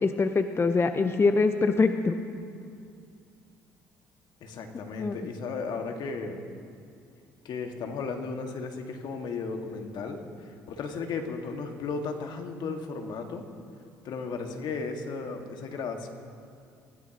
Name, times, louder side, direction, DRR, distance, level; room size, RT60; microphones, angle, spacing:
voice 1, 0.0-2.2 5.0-5.2, left 4 dB, 30° left, 7 dB, 0.9 m, -24 dB
voice 2, 4.4-6.4 7.5-10.2 10.7-13.4 14.1-16.1, left 4 dB, 60° left, 4 dB, 1.9 m, -35 dB
24.5 x 16.5 x 3.0 m, 2.4 s
hypercardioid pair, 60°, 8 cm